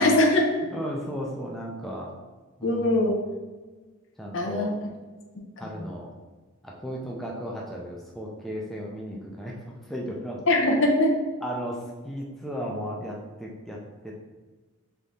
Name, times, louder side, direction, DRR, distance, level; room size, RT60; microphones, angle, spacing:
voice 1, 0.0-0.6 2.6-3.2 4.3-4.7 5.6-5.8 10.5-11.1, left 1 dB, 60° left, 2 dB, 0.7 m, -21 dB
voice 2, 0.7-2.1 2.6-3.0 4.2-4.7 5.6-6.1 6.6-9.6 9.9-10.4 11.4-11.8 12.0-13.8 14.0-14.1, equal, ahead, -3 dB, 0.4 m, -35 dB
3.6 x 3.5 x 4.0 m, 1.3 s
head